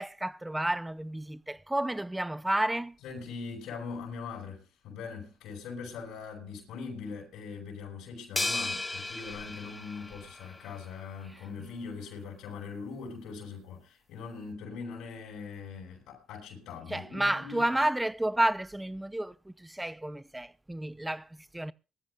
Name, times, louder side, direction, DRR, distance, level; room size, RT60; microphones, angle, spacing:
voice 1, 0.0-3.0 16.9-21.7, right 1 dB, 10° right, 0.6 m, -31 dB
voice 2, 3.0-17.7, left 5 dB, 90° left, 5.8 m, -41 dB
sound 1, 8.4-10.8, left 2 dB, 20° left, 0.8 m, -35 dB
22.5 x 14.0 x 2.4 m
cardioid pair, 90°, 0 cm